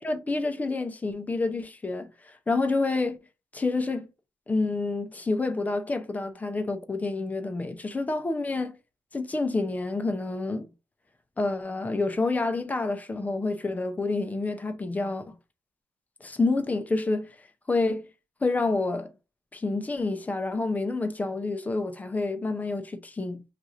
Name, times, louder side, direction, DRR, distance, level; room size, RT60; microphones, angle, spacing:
voice 1, 0.0-3.2 3.5-4.1 4.5-8.7 9.1-10.7 11.4-15.4 16.2-17.3 17.7-18.1 18.4-19.1 19.5-23.4, left 3 dB, 20° left, 0.6 m, -28 dB
2.8 x 2.5 x 3.7 m
cardioid pair, 115°, 8 cm